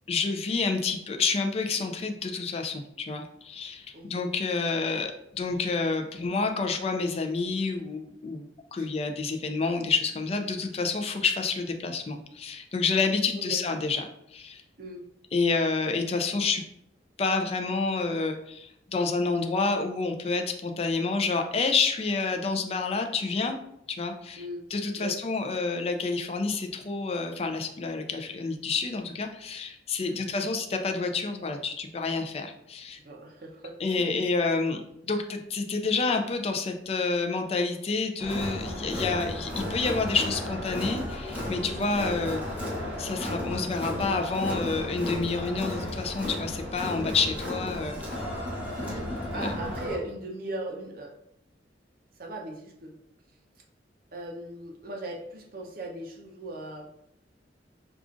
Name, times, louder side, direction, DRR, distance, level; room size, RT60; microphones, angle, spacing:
voice 1, 0.1-14.0 14.3-14.6 15.3-16.6 17.2-23.6 23.9-24.4 24.7-33.0 33.8-42.4 43.0-48.0 49.3-49.5, left 4 dB, 35° left, 5 dB, 0.4 m, -29 dB
voice 2, 3.9-4.2 8.8-8.9 13.4-13.6 14.8-15.0 24.4-24.7 25.0-25.2 30.0-30.2 32.9-34.4 41.7-41.9 43.6-44.9 46.8-47.1 48.8-51.1 52.2-52.9 54.1-56.9, right 1 dB, 50° right, 1 dB, 0.6 m, -39 dB
Crowd, 38.2-49.9, left 1 dB, 10° right, 0.7 m, -34 dB
4.8 x 2.4 x 2.5 m, 0.78 s
head